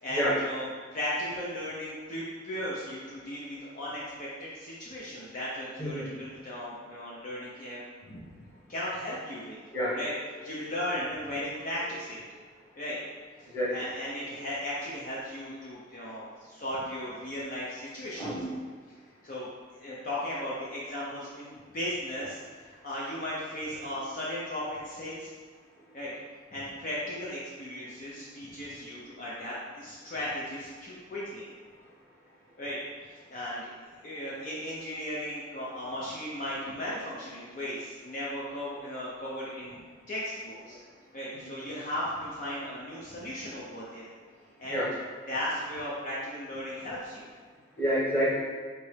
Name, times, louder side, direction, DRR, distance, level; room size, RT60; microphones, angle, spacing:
voice 1, 0.0-0.7 0.9-8.2 8.7-9.6 10.0-10.1 10.4-12.2 12.7-13.0 13.7-18.3 19.2-19.5 19.7-25.3 25.9-26.1 26.5-31.5 32.6-32.8 33.0-33.7 34.0-39.8 40.1-40.8 41.1-44.1 44.6-44.8 45.3-47.3, left 1 dB, 45° left, -6 dB, 0.6 m, -36 dB
voice 2, 5.8-6.1 9.6-10.8 11.8-11.9 12.3-12.4 13.5-13.7 18.2-18.5 40.7-40.8 41.3-41.4 44.7-44.9 47.8-48.4, equal, 15° left, -8 dB, 1.2 m, -30 dB
4.0 x 3.4 x 3.3 m, 1.5 s
head